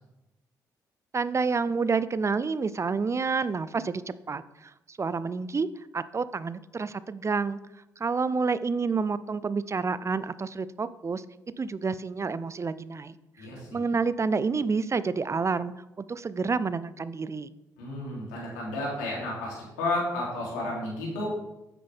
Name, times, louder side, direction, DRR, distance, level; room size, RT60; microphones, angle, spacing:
voice 1, 1.1-5.7 5.9-7.6 8.0-11.2 11.6-17.5, right 4 dB, 35° right, 16 dB, 0.5 m, -29 dB
voice 2, 13.4-13.7 17.8-21.2, left 2 dB, 90° left, -4 dB, 3.4 m, -32 dB
9.3 x 8.8 x 3.6 m, 0.94 s
hypercardioid pair, 50°, 9 cm